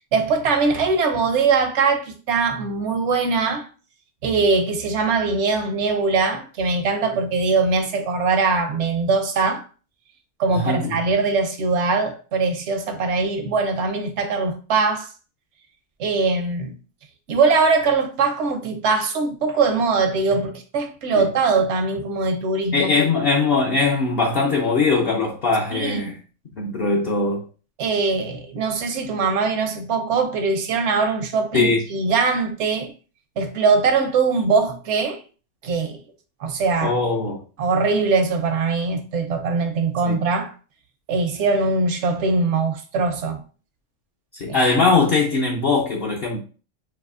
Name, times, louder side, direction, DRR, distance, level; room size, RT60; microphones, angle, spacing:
voice 1, 0.1-3.7 4.2-9.6 10.4-15.1 16.0-16.7 17.3-22.9 25.7-26.2 27.8-32.9 33.4-35.2 35.6-36.0 36.4-36.9 37.6-40.5 41.1-43.4 44.5-44.6, right 4 dB, 70° right, 1.0 m, -21 dB
voice 2, 10.5-11.0 21.1-21.3 22.7-26.2 26.6-27.4 31.5-31.8 36.8-37.4 40.0-40.2 44.3-46.4, left 3 dB, 55° left, 0.9 m, -20 dB
4.8 x 2.8 x 2.4 m
omnidirectional pair, 1.3 m